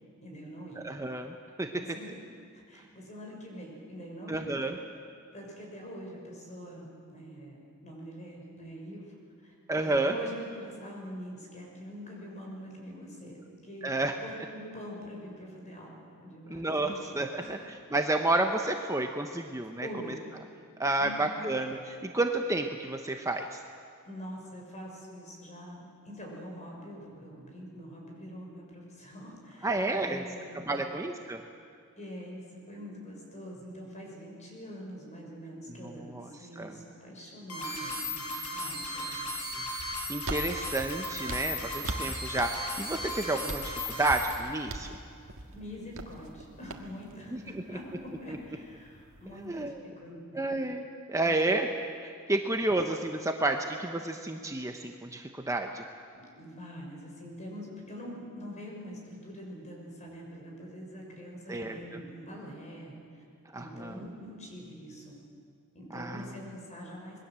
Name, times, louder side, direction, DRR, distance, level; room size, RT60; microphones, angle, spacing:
voice 1, 0.2-0.9 1.6-2.2 2.5-4.5 5.3-9.5 9.8-13.9 14.2-17.1 17.4-17.6 19.8-20.2 21.0-21.5 24.0-29.7 30.0-30.9 32.0-39.3 45.5-49.7 50.0-50.6 51.2-51.5 52.3-52.4 56.1-62.9 63.5-65.1 65.7-67.2, equal, 35° left, -1 dB, 6.4 m, -44 dB
voice 2, 0.8-1.7 4.3-4.8 9.7-10.2 13.8-14.1 16.5-17.6 17.9-19.9 20.8-23.6 29.6-30.2 30.7-31.4 35.8-36.3 36.6-36.7 40.1-45.0 47.3-47.8 48.3-48.4 49.3-49.8 50.3-51.7 52.0-55.8 61.5-62.0 63.5-64.0 65.9-66.3, right 2 dB, 15° right, 4 dB, 1.0 m, -31 dB
sound 1, 37.5-44.3, left 1 dB, 80° left, 6.1 m, -36 dB
sound 2, 39.8-49.7, right 2 dB, 65° right, 1.9 m, -42 dB
26.5 x 21.5 x 7.7 m, 2.3 s
head